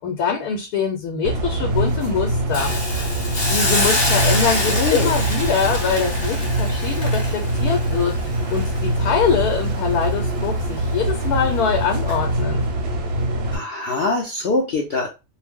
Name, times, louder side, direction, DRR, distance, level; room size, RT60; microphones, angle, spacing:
voice 1, 0.0-2.7 3.5-12.7, left 6 dB, 90° left, 3 dB, 1.1 m, -23 dB
sound 1, 1.2-13.6, right 1 dB, 55° right, 0.7 m, -23 dB
Hiss, 2.5-9.6 10.0-10.1, left 2 dB, 45° left, 1.0 m, -26 dB
voice 2, 4.7-5.1 13.5-15.1, left 3 dB, 65° left, 0 dB, 0.5 m, -23 dB
2.5 x 2.1 x 3.4 m, 0.27 s
omnidirectional pair, 1.6 m